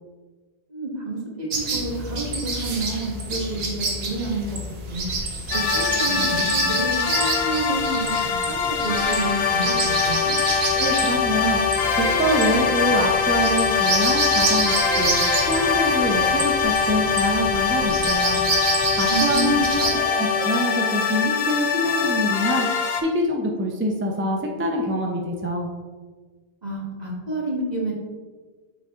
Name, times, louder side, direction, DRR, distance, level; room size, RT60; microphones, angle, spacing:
voice 1, 0.7-4.6 4.9-5.1 5.5-10.4 19.1-19.9 26.6-27.9, right 2 dB, 40° right, -3 dB, 1.6 m, -29 dB
sound 1, 1.5-20.0, right 3 dB, 70° right, 1.2 m, -28 dB
sound 2, 5.5-23.0, left 6 dB, 75° left, 0.9 m, -23 dB
voice 2, 10.7-11.6 11.9-15.1 15.5-18.4 19.0-22.7 23.0-25.7, equal, 15° right, 0 dB, 0.4 m, -25 dB
6.9 x 4.1 x 3.6 m, 1.4 s
omnidirectional pair, 1.1 m